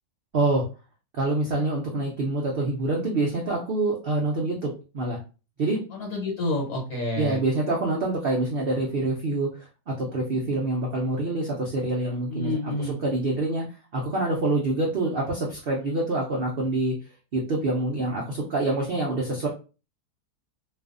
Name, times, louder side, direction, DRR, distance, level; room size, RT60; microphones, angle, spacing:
voice 1, 0.3-0.6 1.2-5.2 5.6-5.8 7.2-9.5 9.9-13.6 13.9-16.9 17.3-19.5, right 2 dB, 80° right, -2 dB, 0.5 m, -26 dB
voice 2, 5.9-7.4 12.3-13.0, left 1 dB, 70° left, -3 dB, 1.3 m, -29 dB
2.6 x 2.4 x 2.4 m, 0.33 s
omnidirectional pair, 1.7 m